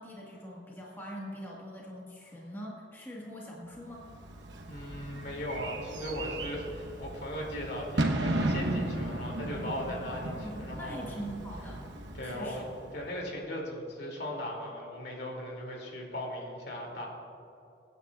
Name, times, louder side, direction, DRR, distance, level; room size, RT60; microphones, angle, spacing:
voice 1, 0.0-4.1 10.3-11.9 12.2-12.6, equal, 10° left, -4 dB, 1.5 m, -43 dB
Bird / Fireworks, 4.0-13.2, right 1 dB, 85° right, 1.0 m, -35 dB
voice 2, 4.7-11.2 12.1-12.6 12.9-17.1, equal, 65° left, -1 dB, 2.6 m, -38 dB
23.0 x 9.6 x 2.4 m, 2.9 s
head